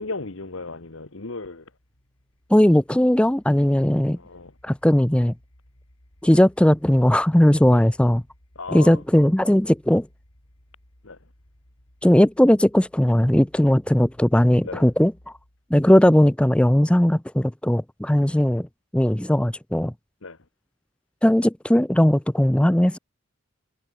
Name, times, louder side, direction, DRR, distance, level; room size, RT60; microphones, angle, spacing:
voice 1, 0.0-1.6 4.2-4.5 7.7-7.8 8.5-9.0 11.0-11.2 14.6-14.8 20.2-20.4, left 3 dB, 65° left, 1.4 m, -35 dB
sound 1, 1.2-15.7, equal, 90° left, 5.1 m, -57 dB
voice 2, 2.5-4.2 4.6-5.3 6.2-8.2 8.7-10.1 12.0-15.3 15.7-18.7 18.9-19.9 21.2-23.0, equal, 5° left, 0.4 m, -18 dB
head